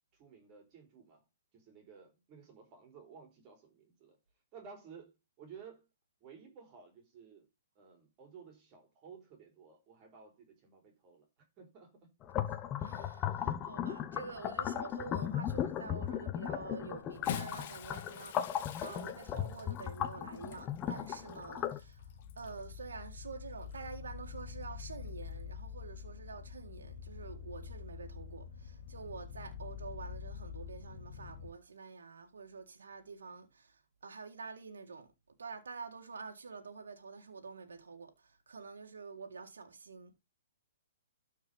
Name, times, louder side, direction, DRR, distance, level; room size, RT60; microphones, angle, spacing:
voice 1, 0.1-1.3 1.5-4.2 4.5-5.9 6.2-7.5 7.8-12.1, right 6 dB, 30° right, 3.9 m, -55 dB
sound 1, 12.2-21.8, left 10 dB, 25° left, 1.0 m, -37 dB
voice 2, 12.4-22.1 22.4-35.1 35.4-40.2, right 4 dB, 80° right, 1.9 m, -48 dB
Bathtub (filling or washing) / Splash splatter, 17.0-22.7 23.6-23.8 25.2-25.3, left 9 dB, 45° left, 1.6 m, -47 dB
sound 2, 19.1-31.5, left 7 dB, 65° left, 1.6 m, -47 dB
13.0 x 4.7 x 5.5 m
hypercardioid pair, 135°, 0 cm